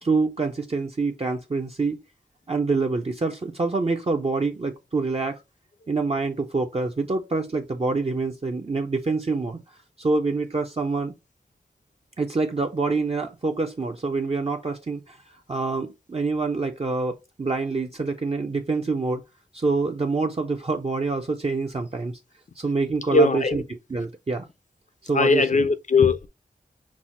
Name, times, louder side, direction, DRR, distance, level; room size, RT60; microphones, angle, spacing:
voice 1, 0.0-2.0 2.5-5.4 5.9-11.1 12.2-19.2 19.5-22.2 22.6-24.5 25.0-25.6, right 3 dB, 35° right, 0.6 m, -26 dB
voice 2, 23.1-23.6 25.1-26.3, left 3 dB, 45° left, 0.5 m, -19 dB
6.0 x 2.1 x 4.1 m
cardioid pair, 45°, 18 cm